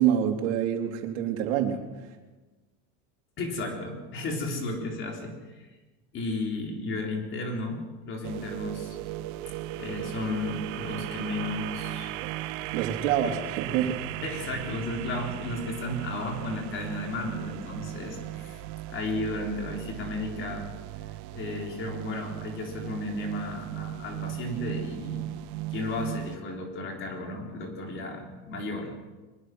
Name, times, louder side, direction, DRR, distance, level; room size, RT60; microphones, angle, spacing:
voice 1, 0.0-1.8 12.2-12.3 12.7-14.0, right 10 dB, 85° right, 4 dB, 3.5 m, -26 dB
voice 2, 3.4-5.8 6.1-9.0 9.7-12.1 13.2-13.3 14.2-20.7 21.3-25.3 25.7-28.9, left 2 dB, 35° left, 1 dB, 4.3 m, -34 dB
sound 1, 8.2-26.4, right 15 dB, 60° right, 1.0 m, -37 dB
23.5 x 21.0 x 6.3 m, 1.2 s
cardioid pair, 165°, 34 cm